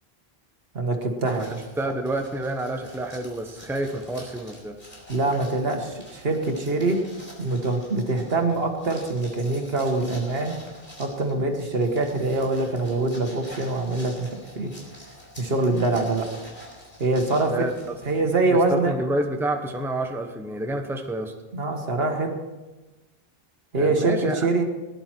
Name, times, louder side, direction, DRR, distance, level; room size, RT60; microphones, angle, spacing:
voice 1, 0.7-1.6 5.1-7.0 7.4-10.5 11.0-14.3 14.6-14.7 15.4-16.3 17.0-17.7 18.1-18.9 21.5-22.3 23.7-24.6, right 2 dB, 70° right, 3 dB, 1.8 m, -24 dB
sound 1, 1.2-18.7, left 1 dB, 50° left, 4.4 m, -46 dB
voice 2, 1.8-4.8 17.5-18.2 18.5-21.3 23.8-24.5, right 1 dB, ahead, 4 dB, 0.9 m, -29 dB
19.0 x 11.0 x 4.5 m, 1.1 s
omnidirectional pair, 1.1 m